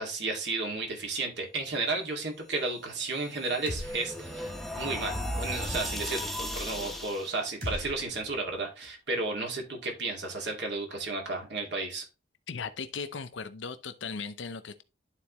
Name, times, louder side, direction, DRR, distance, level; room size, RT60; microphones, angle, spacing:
voice 1, 0.0-12.0, right 3 dB, 65° right, 2.2 m, -33 dB
sound 1, 2.9-7.4, equal, ahead, 0.9 m, -36 dB
sound 2, 3.7-4.5 4.8-4.9 7.6-8.9, equal, 50° right, 4.8 m, -40 dB
voice 2, 12.5-14.8, left 5 dB, 80° left, 0.7 m, -37 dB
11.5 x 4.1 x 3.0 m
head